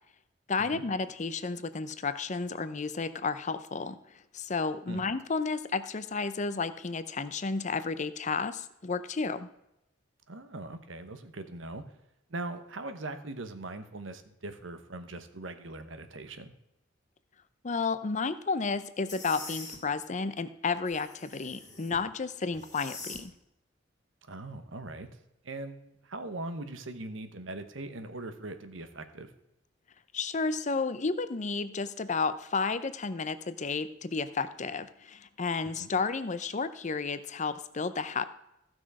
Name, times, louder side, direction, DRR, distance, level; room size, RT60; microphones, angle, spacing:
voice 1, 0.5-4.0 4.3-9.5 17.6-23.3 30.1-38.2, left 4 dB, 40° left, 13 dB, 0.6 m, -32 dB
voice 2, 10.3-11.8 12.3-16.5 24.3-25.1 25.4-29.3 35.7-35.9, right 2 dB, 85° right, 9 dB, 1.1 m, -41 dB
sound 1, 19.1-19.8 20.9-22.0 22.5-23.2, left 3 dB, 20° left, 1.8 m, -44 dB
15.0 x 6.1 x 4.9 m, 0.85 s
head